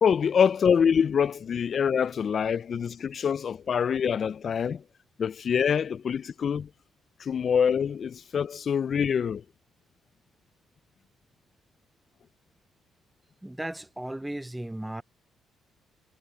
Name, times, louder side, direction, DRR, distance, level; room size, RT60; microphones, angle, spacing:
voice 1, 0.0-4.8 5.2-6.7 7.2-9.4, left 7 dB, 50° left, 0.4 m, -25 dB
voice 2, 13.4-15.0, right 1 dB, 5° right, 0.5 m, -35 dB
cardioid pair, 90°, 0 cm